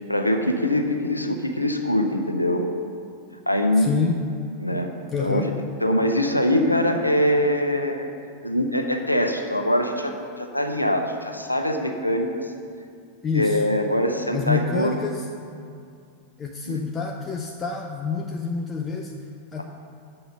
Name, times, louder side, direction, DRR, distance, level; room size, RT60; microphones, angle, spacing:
voice 1, 0.1-2.7 3.5-3.9 4.6-4.9 5.2-5.4 5.8-8.1 8.4-12.5 13.3-15.0 16.7-16.8 19.6-19.7, left 1 dB, 85° left, 5 dB, 0.6 m, -23 dB
voice 2, 3.8-4.2 5.1-5.5 13.2-13.6 14.3-15.3 16.4-19.1 19.5-19.6, left 5 dB, 20° left, 2 dB, 0.5 m, -27 dB
6.9 x 5.6 x 6.7 m, 2.3 s
figure-of-eight pair, 90°, 0 cm